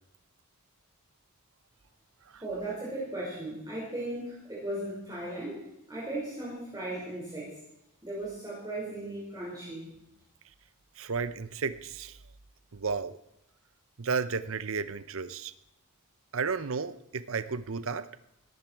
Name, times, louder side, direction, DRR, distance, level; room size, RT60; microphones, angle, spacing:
voice 1, 2.4-7.6 8.0-9.9, right 1 dB, 15° right, -7 dB, 5.2 m, -37 dB
voice 2, 11.0-12.2 12.7-13.2 14.0-15.5 16.3-18.1, right 5 dB, 60° right, 14 dB, 0.7 m, -33 dB
19.5 x 15.0 x 4.6 m, 0.84 s
head